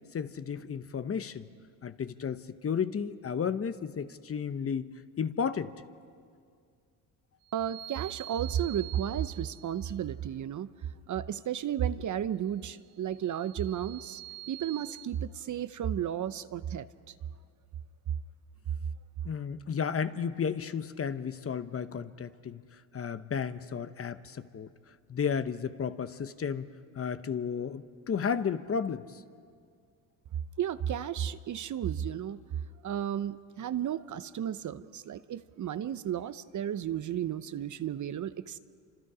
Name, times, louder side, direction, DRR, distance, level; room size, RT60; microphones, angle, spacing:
voice 1, 0.1-1.5 1.8-5.7 19.2-22.6 22.9-24.7 25.1-26.7 27.0-29.2, left 7 dB, 30° left, 12 dB, 0.9 m, -33 dB
sound 1, 7.4-10.0 13.0-15.1, right 17 dB, 75° right, 1.5 m, -46 dB
voice 2, 7.5-10.7 11.1-14.2 14.5-17.1 30.6-32.4 32.8-38.6, right 10 dB, 45° right, 13 dB, 0.8 m, -33 dB
29.0 x 26.0 x 5.0 m, 2.2 s
supercardioid pair, 80°, 43 cm